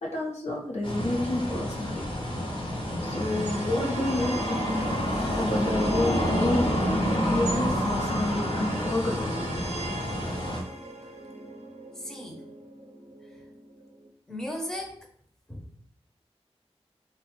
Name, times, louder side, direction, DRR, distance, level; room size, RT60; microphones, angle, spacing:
voice 1, 0.0-2.0 3.0-4.8 5.3-9.4, left 1 dB, 85° left, -2 dB, 0.6 m, -29 dB
sound 1, 0.8-10.6, equal, 45° left, 0.6 m, -29 dB
sound 2, 3.0-14.1, right 1 dB, 80° right, 0.5 m, -41 dB
voice 2, 12.0-12.4 14.3-15.0 15.5-15.8, left 1 dB, 5° left, 1 dB, 0.5 m, -36 dB
3.1 x 2.1 x 2.9 m, 0.63 s
wide cardioid pair, 65°, 11 cm